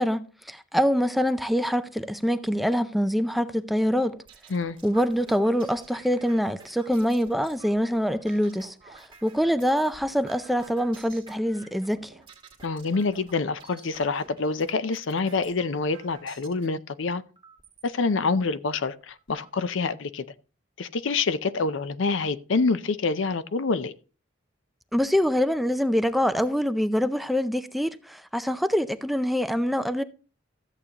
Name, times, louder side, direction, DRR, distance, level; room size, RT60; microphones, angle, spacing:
voice 1, 0.0-4.2 4.8-12.1 24.9-30.0, equal, ahead, 0.4 m, -25 dB
sound 1, 3.8-16.7 17.4-17.9 18.5-18.6 18.9-19.5, right 4 dB, 25° right, 1.8 m, -51 dB
voice 2, 12.6-17.2 17.8-20.2 20.8-23.9, left 4 dB, 70° left, 0.5 m, -26 dB
13.5 x 8.1 x 2.9 m
head